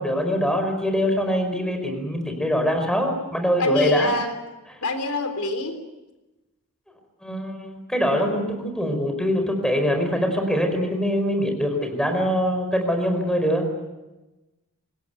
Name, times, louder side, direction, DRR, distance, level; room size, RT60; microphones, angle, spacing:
voice 1, 0.0-4.1 4.7-4.8 7.2-13.6, equal, 5° left, 4 dB, 4.9 m, -23 dB
voice 2, 3.6-4.3 4.8-5.8, left 2 dB, 80° left, 7 dB, 3.8 m, -25 dB
26.0 x 21.0 x 9.2 m, 1.1 s
head